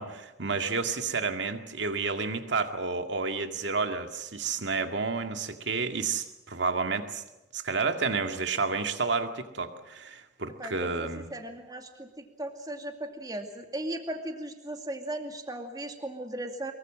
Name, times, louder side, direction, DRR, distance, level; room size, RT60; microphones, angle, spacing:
voice 1, 0.0-7.2 7.5-11.3, right 4 dB, 70° right, 6 dB, 2.1 m, -30 dB
voice 2, 10.6-16.7, right 1 dB, 20° right, 4 dB, 2.4 m, -37 dB
24.0 x 22.5 x 7.5 m, 0.98 s
head